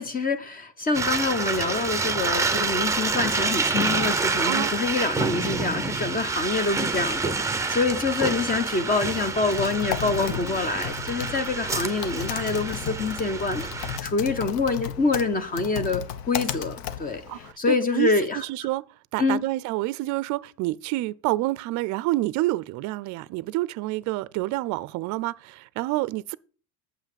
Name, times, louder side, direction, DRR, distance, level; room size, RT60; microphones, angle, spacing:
voice 1, 0.0-17.2 17.6-18.4 19.2-19.4, left 3 dB, 20° left, 0.9 m, -26 dB
sound 1, 0.9-14.0, right 4 dB, 10° right, 0.7 m, -28 dB
Typing, 9.3-17.5, left 9 dB, 70° left, 1.0 m, -35 dB
voice 2, 17.3-18.8 19.1-26.4, right 18 dB, 50° right, 0.5 m, -28 dB
7.7 x 5.7 x 7.4 m
cardioid pair, 135°, 38 cm